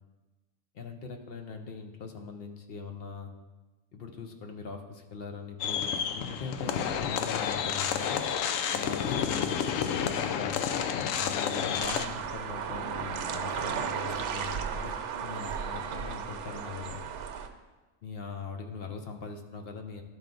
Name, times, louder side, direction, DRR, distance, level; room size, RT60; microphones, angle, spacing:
voice 1, 0.7-3.3 3.9-8.2 8.7-10.7 11.2-14.9 15.2-17.0 18.0-20.0, left 5 dB, 55° left, 4 dB, 0.8 m, -41 dB
sound 1, 5.6-12.1, left 8 dB, 80° left, 1.0 m, -30 dB
sound 2, 11.8-17.5, right 7 dB, 70° right, 0.9 m, -35 dB
12.0 x 4.5 x 3.8 m, 1.2 s
omnidirectional pair, 1.3 m